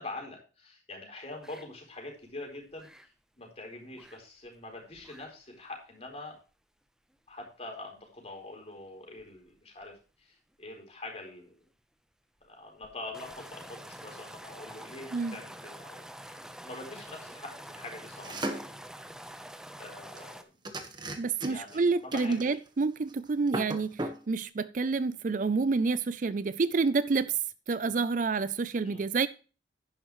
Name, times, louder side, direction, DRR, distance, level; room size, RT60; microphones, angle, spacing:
voice 1, 0.0-6.4 7.3-11.5 12.5-18.6 19.2-19.4 19.7-20.5 21.5-22.4 28.8-29.1, left 2 dB, 35° left, 4.3 m, -44 dB
sound 1, 1.4-1.7 2.0-2.2 2.5-3.1 3.9-4.2 4.5-4.6 4.9-5.2 5.6-5.7 6.3-6.4 9.2-9.4 9.8-9.9 12.8-20.4, right 1 dB, 5° right, 0.8 m, -47 dB
sound 2, 18.2-18.8 20.2-20.3 20.6-21.8 22.1-22.8 23.1-23.2 23.5-24.2, right 1 dB, 25° right, 1.3 m, -36 dB
voice 2, 21.2-27.4 27.7-29.3, right 4 dB, 45° right, 0.4 m, -28 dB
10.5 x 10.5 x 3.1 m
head